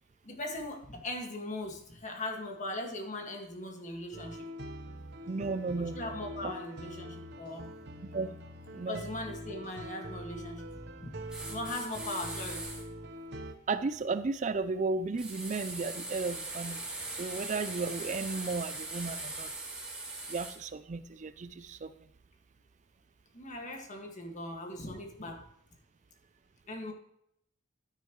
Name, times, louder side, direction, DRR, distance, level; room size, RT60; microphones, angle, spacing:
voice 1, 0.2-4.5 5.8-7.7 8.9-10.7 11.0-12.7 23.3-25.4 26.7-26.9, left 1 dB, 40° left, 2 dB, 1.8 m, -39 dB
sound 1, 4.1-13.5, equal, 55° right, 0.9 m, -44 dB
voice 2, 5.3-6.0 6.4-6.5 8.1-8.3 8.7-9.0 13.7-16.8 17.2-19.5 20.3-21.9, right 4 dB, 35° right, 13 dB, 0.4 m, -34 dB
sound 2, 11.3-12.8 15.2-20.6, right 2 dB, 5° right, 2.9 m, -40 dB
12.0 x 10.0 x 3.1 m, 0.74 s
head